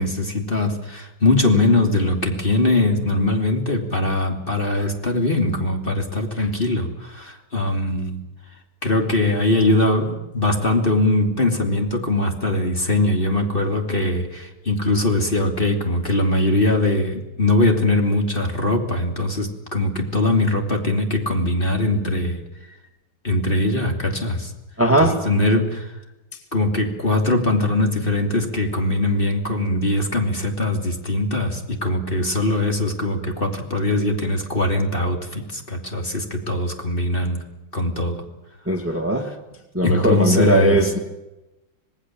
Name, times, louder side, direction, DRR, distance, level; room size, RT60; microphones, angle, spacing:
voice 1, 0.0-8.2 8.8-22.4 23.2-24.5 24.9-25.9 26.5-37.4 37.7-38.2 39.8-40.9, left 2 dB, 25° left, 3 dB, 3.2 m, -21 dB
voice 2, 24.8-25.1 38.7-39.3 39.7-41.0, right 1 dB, 5° right, 5 dB, 1.9 m, -18 dB
26.0 x 19.5 x 7.6 m, 0.98 s
omnidirectional pair, 2.2 m